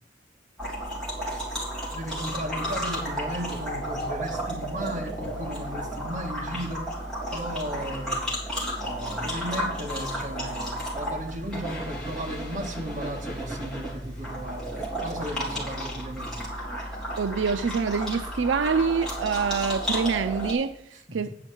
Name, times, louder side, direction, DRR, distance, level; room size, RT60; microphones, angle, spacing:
sound 1, 0.6-20.5, equal, 5° left, 3.4 m, -33 dB
voice 1, 1.9-6.9 7.3-8.3 8.8-16.4 20.9-21.3, equal, 40° right, 1 dB, 1.8 m, -35 dB
voice 2, 17.2-20.8 21.1-21.3, right 5 dB, 80° right, 9 dB, 0.5 m, -25 dB
9.8 x 5.4 x 7.1 m, 0.74 s
head